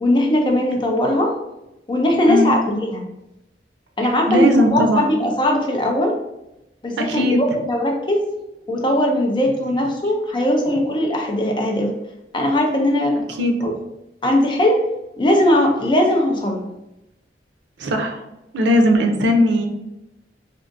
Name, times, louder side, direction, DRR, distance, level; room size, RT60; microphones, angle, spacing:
voice 1, 0.0-1.3 1.9-3.1 4.0-6.2 6.8-8.2 8.7-11.9 12.3-13.2 13.6-13.7 14.2-14.8 15.2-16.7, left 1 dB, 25° left, 2 dB, 0.5 m, -19 dB
voice 2, 4.0-5.1 7.0-7.4 13.4-13.7 17.8-18.2 18.5-19.7, equal, 85° right, 4 dB, 0.5 m, -18 dB
3.6 x 2.4 x 2.5 m, 0.90 s
head